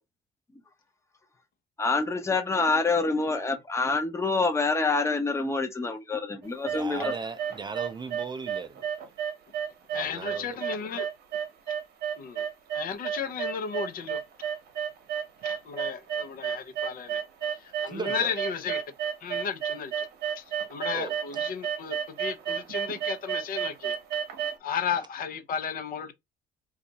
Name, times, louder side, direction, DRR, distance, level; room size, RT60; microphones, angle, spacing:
voice 1, 1.8-7.1, left 3 dB, 15° left, 0.7 m, -26 dB
sound 1, 6.4-24.6, right 8 dB, 70° right, 0.8 m, -31 dB
voice 2, 6.7-8.8 9.9-10.5 17.9-18.3 20.9-21.1, right 5 dB, 25° right, 0.4 m, -37 dB
voice 3, 9.9-11.1 12.2-12.4 12.7-14.2 15.4-17.2 17.6-18.8 19.2-20.1 20.4-20.5 20.7-23.9 24.6-26.1, left 7 dB, 60° left, 0.6 m, -34 dB
2.6 x 2.4 x 4.0 m
cardioid pair, 110°, 17 cm